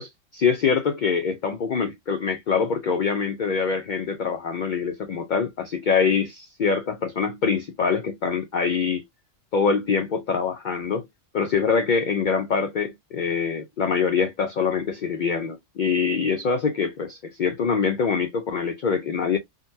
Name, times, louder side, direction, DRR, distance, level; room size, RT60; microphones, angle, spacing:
voice 1, 0.0-9.0 9.5-11.1 11.3-19.4, left 5 dB, 70° left, 0.4 m, -24 dB
3.7 x 2.1 x 2.6 m
omnidirectional pair, 1.4 m